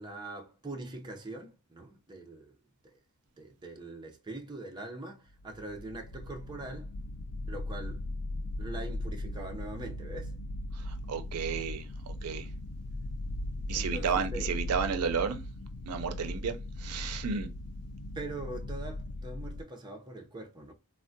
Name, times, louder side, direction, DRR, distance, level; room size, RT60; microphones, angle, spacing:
voice 1, 0.0-2.6 2.8-3.0 3.4-6.9 7.5-8.0 8.6-10.3 13.7-14.5 18.1-20.7, right 2 dB, 20° right, 0.5 m, -42 dB
sound 1, 5.3-19.6, left 1 dB, 75° left, 0.4 m, -38 dB
voice 2, 10.7-12.5 13.7-15.4 15.9-17.5, right 6 dB, 85° right, 0.4 m, -33 dB
3.5 x 2.1 x 2.5 m
head